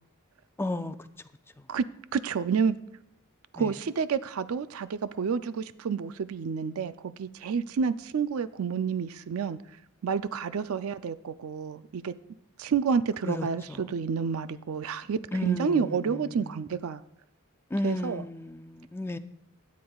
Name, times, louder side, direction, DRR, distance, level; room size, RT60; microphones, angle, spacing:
voice 1, 0.6-1.0 3.6-3.7 13.2-13.8 15.3-16.5 17.7-19.2, left 1 dB, 10° left, 0.4 m, -33 dB
voice 2, 2.1-2.7 3.5-9.6 10.0-12.1 12.6-17.0 17.8-18.2, right 6 dB, 80° right, 0.4 m, -29 dB
16.5 x 9.5 x 2.3 m
head